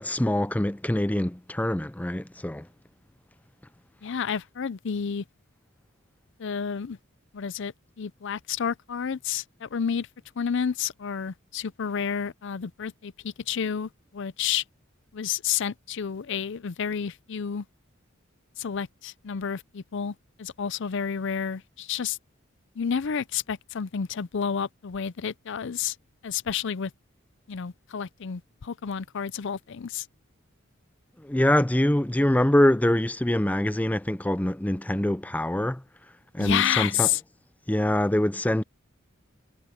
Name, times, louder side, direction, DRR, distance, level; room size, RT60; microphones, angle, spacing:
voice 1, 0.0-2.7 31.2-35.8 36.3-37.1 37.7-38.6, left 1 dB, 10° left, 0.5 m, -24 dB
voice 2, 4.0-5.2 6.4-7.0 7.3-10.1 10.4-14.6 15.1-17.7 18.6-22.2 22.8-26.0 26.2-26.9 27.5-30.1 36.4-37.2, left 7 dB, 60° left, 0.5 m, -30 dB
head